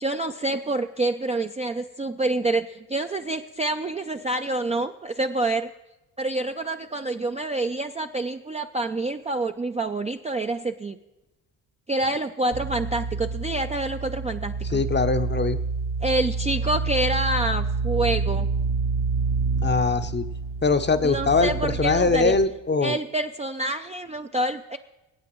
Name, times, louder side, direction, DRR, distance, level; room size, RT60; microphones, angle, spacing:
voice 1, 0.0-5.7 6.2-11.0 11.9-14.8 16.0-18.5 21.0-22.4 22.8-24.8, right 2 dB, 15° right, 5 dB, 0.4 m, -27 dB
sound 1, 12.5-22.4, right 4 dB, 65° right, 1.3 m, -28 dB
voice 2, 14.7-15.6 19.6-20.2 20.6-23.0, left 4 dB, 25° left, 10 dB, 0.7 m, -22 dB
21.5 x 8.5 x 3.1 m, 1.0 s
supercardioid pair, 60°, 46 cm